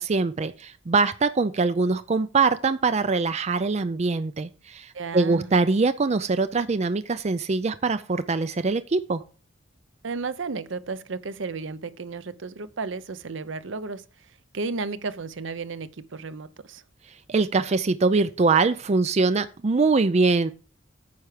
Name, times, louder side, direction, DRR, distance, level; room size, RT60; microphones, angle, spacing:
voice 1, 0.0-9.2 17.3-20.5, right 4 dB, 35° right, 0.5 m, -23 dB
voice 2, 4.9-5.5 10.0-14.0 14.5-16.8, right 4 dB, 75° right, 0.7 m, -33 dB
9.5 x 5.8 x 4.9 m
head